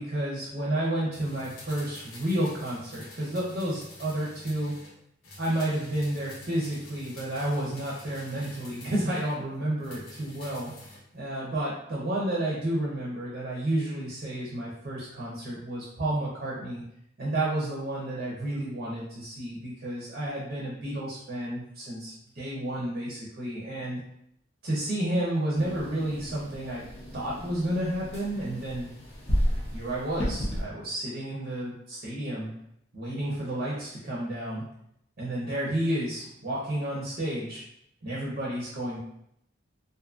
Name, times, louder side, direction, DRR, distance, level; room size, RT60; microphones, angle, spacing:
voice 1, 0.0-4.7 5.4-16.8 17.2-24.0 24.6-26.8 27.1-28.9 29.7-32.5 32.9-34.6 35.2-37.6 38.0-39.0, right 1 dB, 45° right, -5 dB, 0.6 m, -31 dB
sound 1, 1.1-4.9 5.2-9.4 9.8-11.0 11.3-11.4, left 2 dB, 85° left, 0.7 m, -48 dB
sound 2, 25.5-30.6, equal, 30° left, 0.6 m, -32 dB
2.6 x 2.4 x 2.4 m, 0.75 s
head